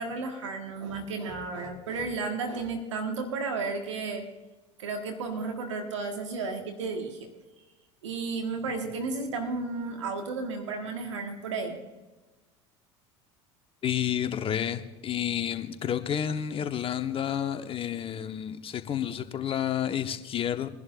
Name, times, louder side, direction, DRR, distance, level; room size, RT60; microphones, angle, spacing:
voice 1, 0.0-4.2 4.8-7.3 8.0-11.8, right 4 dB, 80° right, 4 dB, 1.6 m, -33 dB
voice 2, 13.8-20.7, left 9 dB, 35° left, 8 dB, 1.1 m, -30 dB
22.5 x 11.0 x 2.5 m, 1.2 s
hypercardioid pair, 70°, 15 cm